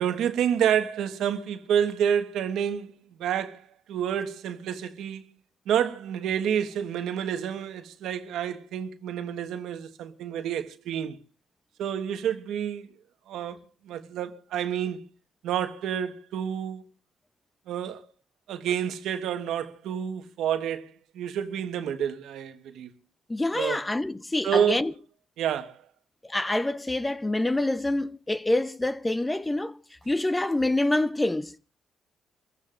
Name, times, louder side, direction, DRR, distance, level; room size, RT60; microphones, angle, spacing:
voice 1, 0.0-2.9 3.2-3.6 3.9-5.2 5.7-11.2 11.8-12.9 13.3-13.6 13.9-15.1 15.4-16.8 17.7-18.0 18.5-20.9 21.1-22.9 23.5-23.8 24.4-24.9 25.4-25.8, right 9 dB, 80° right, 1.3 m, -28 dB
voice 2, 23.3-24.9 26.3-29.8 30.1-31.6, left 1 dB, 15° left, 0.8 m, -26 dB
29.0 x 15.5 x 2.5 m
cardioid pair, 90°, 0 cm